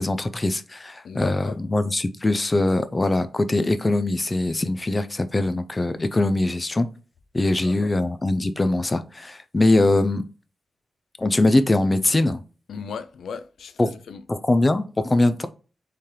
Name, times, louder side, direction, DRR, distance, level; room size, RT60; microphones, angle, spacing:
voice 1, 0.0-6.9 7.3-10.3 11.2-12.4 13.8-13.9 14.3-15.5, left 2 dB, 20° left, 0.4 m, -22 dB
voice 2, 1.0-1.6 7.4-7.9 12.7-14.2, left 5 dB, 85° left, 0.4 m, -37 dB
4.3 x 3.3 x 3.6 m
wide cardioid pair, 160°, 0 cm